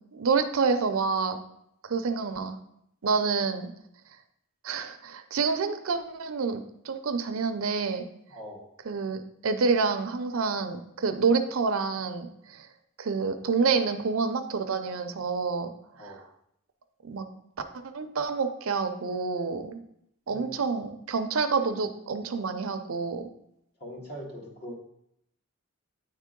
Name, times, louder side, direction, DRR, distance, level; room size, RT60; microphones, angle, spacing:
voice 1, 0.1-1.4 1.9-2.6 3.0-3.7 4.6-8.0 8.9-12.7 13.0-15.7 16.0-16.1 17.0-17.3 17.9-19.8 20.3-23.3, right 4 dB, 75° right, 8 dB, 0.6 m, -28 dB
voice 2, 8.3-8.6 16.0-16.2 20.3-20.5 23.8-24.8, equal, 50° left, -2 dB, 1.7 m, -41 dB
8.9 x 3.7 x 3.7 m, 0.74 s
head